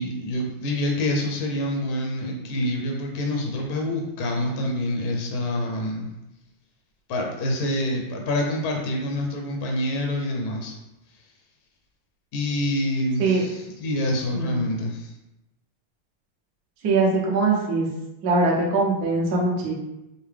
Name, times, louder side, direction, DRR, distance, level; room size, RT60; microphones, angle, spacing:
voice 1, 0.0-6.1 7.1-10.7 12.3-15.1, left 1 dB, 70° left, 0 dB, 0.9 m, -26 dB
voice 2, 14.3-14.7 16.8-17.9 18.2-19.7, right 3 dB, 55° right, -4 dB, 1.2 m, -22 dB
5.6 x 2.2 x 3.3 m, 0.94 s
omnidirectional pair, 2.4 m